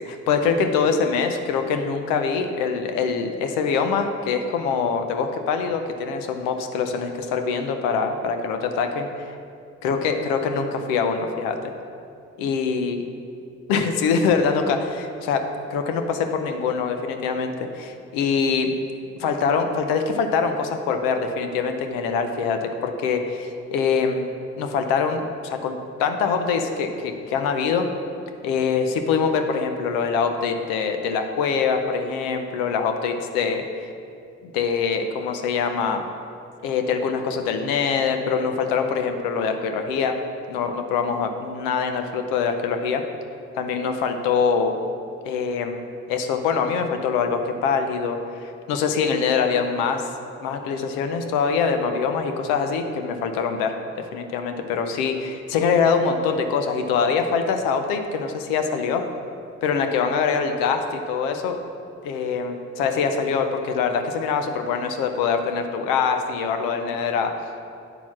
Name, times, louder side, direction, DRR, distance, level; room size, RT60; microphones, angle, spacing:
voice 1, 0.0-9.3 9.8-11.6 12.4-13.0 13.7-15.4 15.7-18.7 19.2-24.3 24.6-27.9 28.4-33.9 34.5-36.0 36.6-40.1 40.5-43.0 43.5-44.8 45.2-45.8 46.1-50.0 50.4-59.0 59.6-61.6 62.0-67.3, left 5 dB, 90° left, 6 dB, 0.7 m, -24 dB
8.7 x 4.3 x 6.0 m, 2.5 s
supercardioid pair, 55°, 33 cm